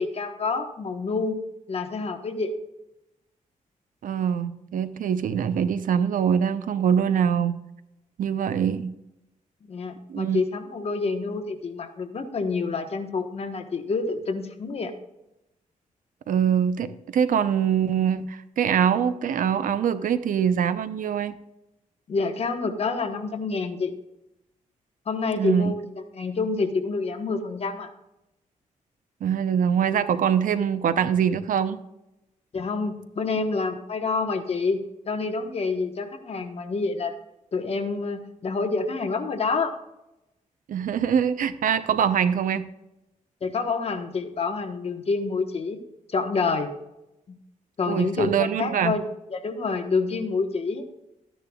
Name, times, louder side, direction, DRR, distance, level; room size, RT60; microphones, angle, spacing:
voice 1, 0.0-1.4 1.7-2.5 9.7-14.9 22.1-23.9 25.1-25.8 26.1-27.9 32.5-37.1 37.5-39.7 43.4-45.8 46.1-46.7 47.3-47.4 47.8-49.0 49.3-50.8, left 4 dB, 50° left, 6 dB, 1.2 m, -27 dB
voice 2, 4.0-7.6 8.2-8.9 10.1-10.4 16.3-21.3 25.4-25.7 29.2-31.8 40.7-42.7 47.9-48.9, right 8 dB, 80° right, 12 dB, 0.7 m, -23 dB
13.0 x 10.0 x 2.3 m, 0.91 s
wide cardioid pair, 140°, 14 cm